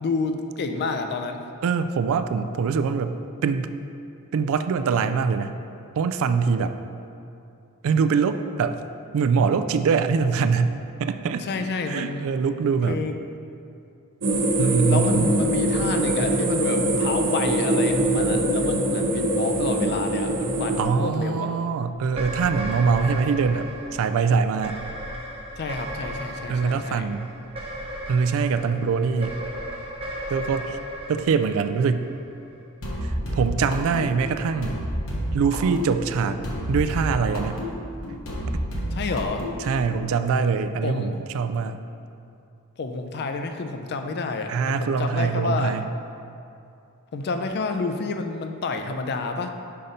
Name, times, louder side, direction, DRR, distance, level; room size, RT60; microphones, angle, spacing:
voice 1, 0.0-1.5 11.4-12.3 12.9-13.2 14.9-21.5 25.6-27.1 38.9-39.4 40.8-41.2 42.8-45.8 47.1-49.5, left 3 dB, 50° left, 6 dB, 0.4 m, -29 dB
voice 2, 1.6-3.2 3.4-3.7 4.3-5.5 5.9-6.8 7.8-8.8 9.1-11.5 11.9-13.0 14.6-15.3 20.8-24.8 26.5-27.3 28.1-29.4 30.3-30.8 31.1-32.1 33.0-34.8 35.3-36.4 36.7-37.6 38.5-38.6 39.6-41.8 44.5-45.9, right 5 dB, 65° right, 10 dB, 0.3 m, -23 dB
sound 1, 14.2-20.8, right 1 dB, 90° right, 1.0 m, -23 dB
sound 2, 22.1-32.5, right 1 dB, 25° right, 0.8 m, -36 dB
sound 3, 32.8-40.0, equal, 65° left, 1.1 m, -30 dB
5.6 x 5.1 x 4.1 m, 2.6 s
head